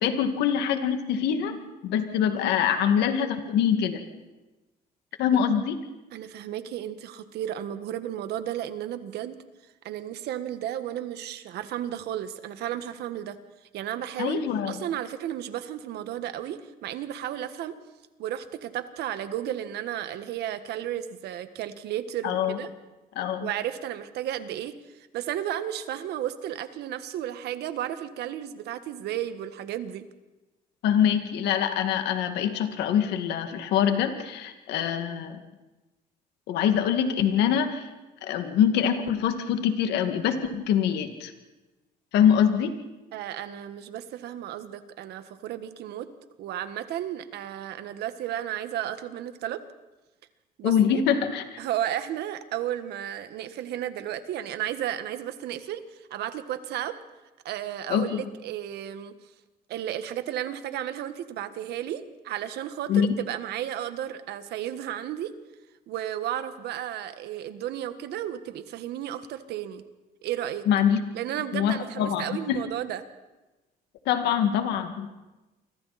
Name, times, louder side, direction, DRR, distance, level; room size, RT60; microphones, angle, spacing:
voice 1, 0.0-4.0 5.2-5.8 14.2-14.8 22.2-22.6 23.2-23.5 30.8-35.4 36.5-37.9 38.2-41.3 42.1-42.7 50.6-51.6 57.9-58.2 62.9-63.1 70.7-71.0 71.5-72.7 74.1-75.1, left 8 dB, 80° left, 6 dB, 2.2 m, -24 dB
voice 2, 6.1-9.4 9.8-13.4 13.7-17.8 18.2-22.7 23.4-30.1 43.1-46.1 46.4-49.6 50.6-51.0 51.6-57.0 57.5-59.1 59.7-65.3 65.9-69.8 70.2-70.7 71.1-73.0, right 11 dB, 75° right, 10 dB, 1.6 m, -33 dB
29.0 x 24.5 x 4.3 m, 1.1 s
cardioid pair, 110°, 17 cm